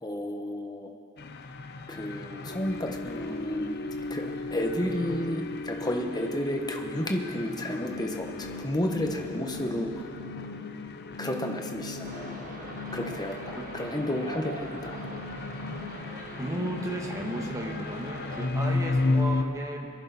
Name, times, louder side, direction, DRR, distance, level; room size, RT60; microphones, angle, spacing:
voice 1, 0.0-0.9 1.9-3.8 4.1-4.2 4.5-9.9 11.2-12.5 12.9-15.0, left 1 dB, 20° left, 2 dB, 1.2 m, -32 dB
sound 1, 1.2-19.4, left 3 dB, 50° left, 0.7 m, -34 dB
sound 2, 12.0-18.5, right 2 dB, 40° right, 1.4 m, -43 dB
voice 2, 16.4-19.9, right 1 dB, 15° right, 0 dB, 1.6 m, -34 dB
24.5 x 11.0 x 4.2 m, 2.7 s
head